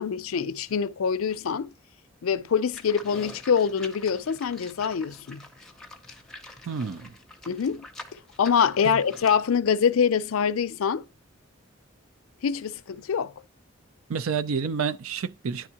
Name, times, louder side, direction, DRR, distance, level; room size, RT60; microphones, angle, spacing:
voice 1, 0.0-1.7 2.2-5.4 7.5-11.1 12.4-13.3, left 7 dB, 90° left, 0.4 m, -25 dB
Livestock farm animals working animals, 2.7-9.5, left 2 dB, 5° left, 0.6 m, -46 dB
voice 2, 6.7-7.1 8.8-9.0 14.1-15.7, right 6 dB, 85° right, 0.5 m, -29 dB
10.0 x 3.6 x 2.9 m
head